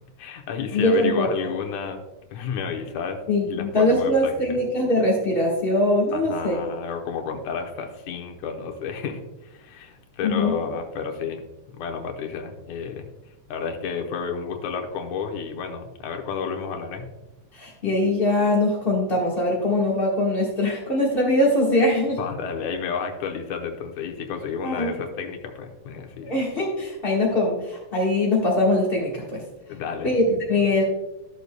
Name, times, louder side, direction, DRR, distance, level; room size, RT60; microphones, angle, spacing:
voice 1, 0.2-2.0 2.3-3.2 3.5-4.3 6.1-11.4 11.7-13.1 13.5-17.1 22.2-26.3 29.7-30.1, left 6 dB, 75° left, 4 dB, 2.2 m, -31 dB
voice 2, 0.7-1.5 3.3-6.6 10.2-10.5 17.5-22.2 24.6-25.0 26.2-29.4 30.0-30.8, left 1 dB, 60° left, -4 dB, 0.6 m, -22 dB
13.5 x 6.8 x 2.2 m, 0.99 s
omnidirectional pair, 3.6 m